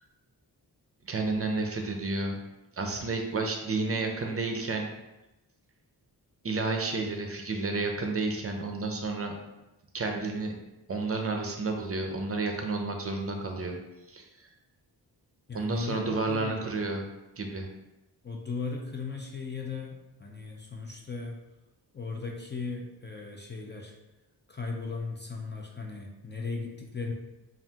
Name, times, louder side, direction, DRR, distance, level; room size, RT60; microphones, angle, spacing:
voice 1, 1.0-2.4 2.7-4.9 6.4-9.3 9.9-10.5 10.9-13.7 14.1-14.2 15.5-17.1 17.4-17.7, right 3 dB, 35° right, 3 dB, 0.5 m, -31 dB
voice 2, 15.5-17.0 18.2-21.4 21.9-23.9 24.5-27.1, left 4 dB, 30° left, 0 dB, 0.4 m, -37 dB
5.4 x 2.4 x 2.8 m, 0.98 s
wide cardioid pair, 150°, 41 cm